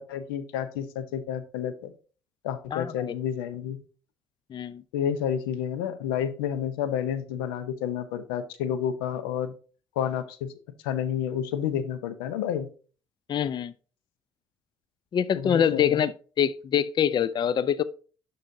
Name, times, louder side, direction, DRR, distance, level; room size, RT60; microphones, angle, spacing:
voice 1, 0.0-1.9 2.4-3.8 4.9-9.5 10.0-10.5 10.8-12.7 15.3-16.0, left 9 dB, 85° left, 0.6 m, -30 dB
voice 2, 2.7-3.1 4.5-4.8 13.3-13.7 15.1-16.1 16.4-17.8, left 8 dB, 40° left, 0.4 m, -25 dB
11.0 x 4.1 x 2.6 m
hypercardioid pair, 55°, 12 cm